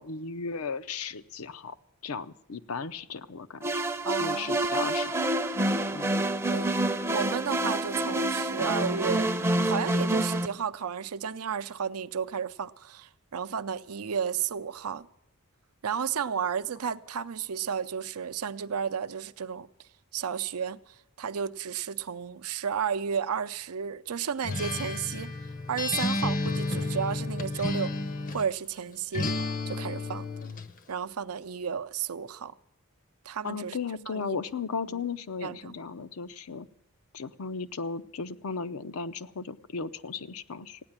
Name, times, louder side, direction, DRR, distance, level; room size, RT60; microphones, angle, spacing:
voice 1, 0.0-1.8 2.0-3.8 4.2-5.3 5.9-6.1 33.4-36.7 37.1-40.8, left 5 dB, 70° left, 0.6 m, -36 dB
sound 1, 3.6-10.5, right 1 dB, 10° right, 0.6 m, -27 dB
voice 2, 4.0-4.6 6.5-6.7 7.1-15.1 15.8-19.7 20.1-25.3 25.7-27.9 28.3-29.3 29.7-30.3 30.9-32.5 33.2-33.8 34.1-34.4 34.9-35.0 35.4-35.7, right 7 dB, 85° right, 0.6 m, -33 dB
Acoustic guitar, 24.4-28.5 29.1-30.7, left 2 dB, 40° left, 0.7 m, -31 dB
16.0 x 9.7 x 8.8 m
head